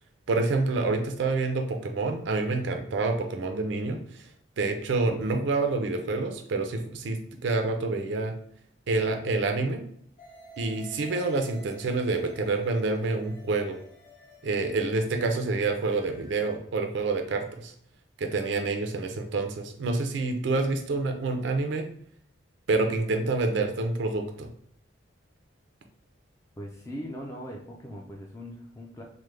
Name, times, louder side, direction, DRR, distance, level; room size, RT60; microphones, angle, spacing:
voice 1, 0.3-4.0 4.6-8.3 8.9-9.8 10.6-13.8 14.4-17.7 18.2-21.9 22.7-24.5, right 3 dB, 75° right, 5 dB, 0.4 m, -27 dB
sound 1, 10.2-16.6, right 1 dB, 45° left, 0.7 m, -52 dB
voice 2, 26.6-29.0, equal, 15° left, -1 dB, 0.3 m, -40 dB
3.3 x 2.0 x 3.1 m, 0.66 s
head